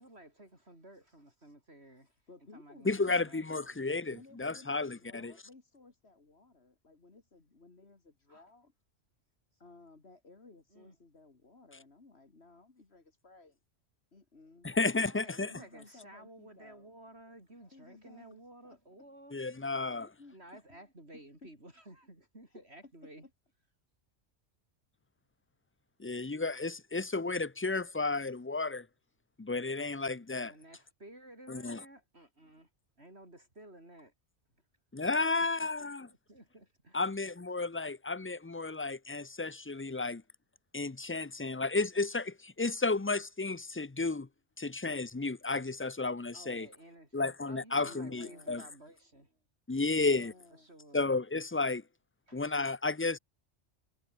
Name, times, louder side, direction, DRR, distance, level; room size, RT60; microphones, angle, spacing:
voice 1, 0.0-2.2 2.5-3.8 8.3-8.5 10.7-11.0 14.9-19.4 20.3-23.3 30.3-32.7 33.0-34.1 35.2-35.7 36.3-37.1 46.3-49.4 49.8-50.2 50.6-51.1 52.3-52.4, right 1 dB, 60° right, 7.7 m, -54 dB
voice 2, 2.3-3.6 4.1-8.7 9.6-13.6 14.1-14.8 15.4-16.9 17.6-18.8 19.7-20.4 20.7-20.8 21.4-21.5 22.5-23.1 47.7-48.6 49.9-50.7, left 3 dB, 60° left, 2.9 m, -57 dB
voice 3, 2.9-5.3 14.6-15.5 19.3-20.1 26.0-28.9 29.4-30.5 31.5-31.8 34.9-36.1 36.9-40.2 40.7-44.3 44.6-46.7 47.1-48.6 49.7-50.3 50.9-51.8 52.3-53.2, left 3 dB, 20° left, 0.3 m, -32 dB
omnidirectional pair, 1.2 m